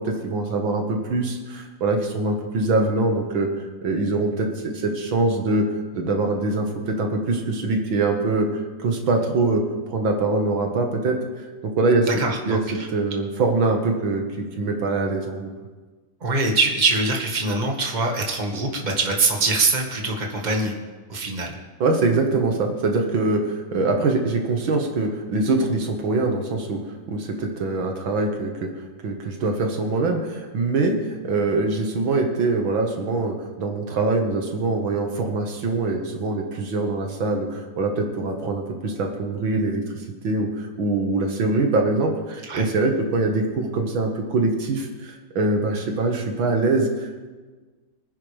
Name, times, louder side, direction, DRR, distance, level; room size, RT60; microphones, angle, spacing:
voice 1, 0.0-3.5 3.8-5.7 5.9-12.6 12.9-15.5 21.8-28.7 29.0-39.8 40.2-47.3, right 3 dB, 85° right, 3 dB, 2.4 m, -23 dB
voice 2, 12.1-12.9 16.2-20.7 21.1-21.6 42.4-42.7, right 3 dB, 25° right, 1 dB, 1.7 m, -23 dB
24.5 x 10.0 x 3.5 m, 1.3 s
omnidirectional pair, 2.1 m